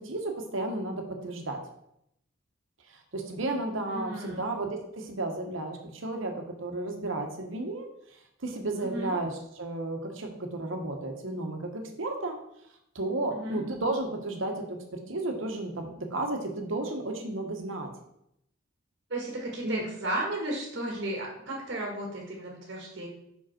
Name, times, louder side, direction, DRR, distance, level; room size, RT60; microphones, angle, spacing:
voice 1, 0.0-1.6 3.1-7.9 8.4-12.4 12.9-14.7 15.1-17.9 19.6-19.8, right 2 dB, 85° right, 3 dB, 1.2 m, -33 dB
voice 2, 3.9-4.4 8.8-9.1 13.3-13.6 19.1-23.1, right 1 dB, 55° right, -1 dB, 1.6 m, -34 dB
5.7 x 5.2 x 4.3 m, 0.76 s
head